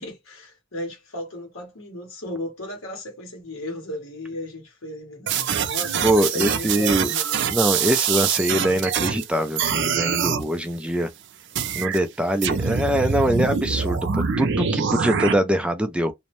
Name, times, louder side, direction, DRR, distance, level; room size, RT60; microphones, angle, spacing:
voice 1, 0.0-7.4, left 1 dB, 75° left, 1.3 m, -35 dB
sound 1, 5.3-9.2 9.6-10.4 11.6-12.0 12.4-15.3, right 7 dB, 60° right, 0.5 m, -24 dB
voice 2, 6.0-7.1 7.5-11.1 11.8-16.1, right 1 dB, 5° right, 0.3 m, -23 dB
2.6 x 2.1 x 3.0 m
head